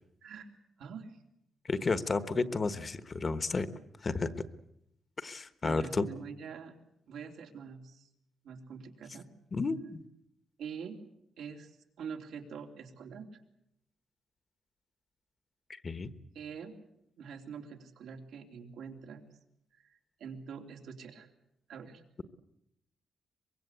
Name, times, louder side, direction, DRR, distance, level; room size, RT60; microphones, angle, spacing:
voice 1, 0.8-1.2 1.8-2.0 5.6-6.7 7.1-8.1 8.4-9.3 10.6-11.0 11.4-13.4 16.3-16.7 17.2-19.2 19.7-21.3 21.7-22.0, right 6 dB, 85° right, 3 dB, 3.3 m, -45 dB
voice 2, 1.7-3.7 4.0-4.3 5.2-6.1 9.5-10.0 15.7-16.1, left 3 dB, 30° left, 12 dB, 1.2 m, -32 dB
24.0 x 22.5 x 8.3 m, 0.80 s
cardioid pair, 140°, 0 cm